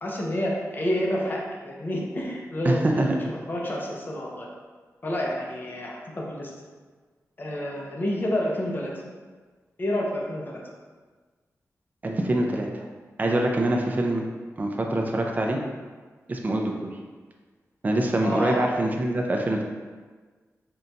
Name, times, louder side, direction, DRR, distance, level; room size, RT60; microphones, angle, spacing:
voice 1, 0.0-4.5 5.0-6.5 7.4-8.9 9.8-10.6 18.2-18.6, left 1 dB, 35° left, -2 dB, 0.6 m, -29 dB
voice 2, 2.6-3.2 12.0-12.8 13.2-14.2 14.6-15.6 16.3-16.7 17.8-19.6, right 1 dB, 30° right, 1 dB, 0.4 m, -24 dB
3.9 x 2.2 x 3.9 m, 1.4 s
wide cardioid pair, 140°, 6 cm